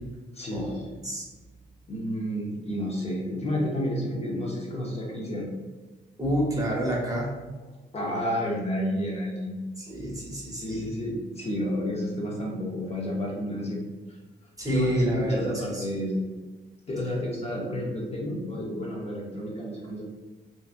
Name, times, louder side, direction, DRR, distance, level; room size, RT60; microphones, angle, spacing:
voice 1, 0.3-1.0 1.9-5.5 7.9-9.6 10.6-13.8 14.7-16.2 16.9-20.0, left 1 dB, 35° left, -2 dB, 0.6 m, -30 dB
voice 2, 6.2-7.3 9.8-10.9 14.6-15.8, right 1 dB, 20° right, -3 dB, 0.8 m, -28 dB
2.8 x 2.4 x 2.4 m, 1.2 s
cardioid pair, 90°, 19 cm